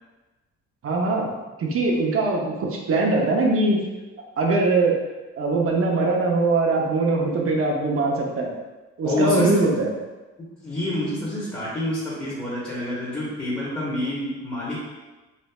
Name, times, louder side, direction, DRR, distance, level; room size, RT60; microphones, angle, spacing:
voice 1, 0.8-1.3 1.6-3.8 4.4-5.0 5.4-8.5 9.0-9.9, right 3 dB, 50° right, 0 dB, 0.7 m, -21 dB
voice 2, 9.0-9.6 10.4-14.8, left 1 dB, 15° left, -10 dB, 1.2 m, -27 dB
4.2 x 2.5 x 2.3 m, 1.2 s
cardioid pair, 90°, 30 cm